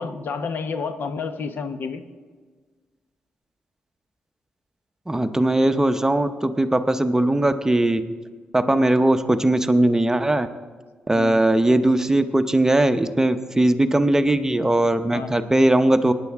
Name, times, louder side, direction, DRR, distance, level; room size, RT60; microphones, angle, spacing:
voice 1, 0.0-2.0 8.6-8.9 11.1-11.4 15.1-15.3, left 5 dB, 65° left, 9 dB, 0.8 m, -30 dB
voice 2, 5.1-8.0 8.5-10.5 11.1-16.1, right 1 dB, 15° right, 9 dB, 0.7 m, -19 dB
18.0 x 9.6 x 3.5 m, 1.4 s
cardioid pair, 70°, 4 cm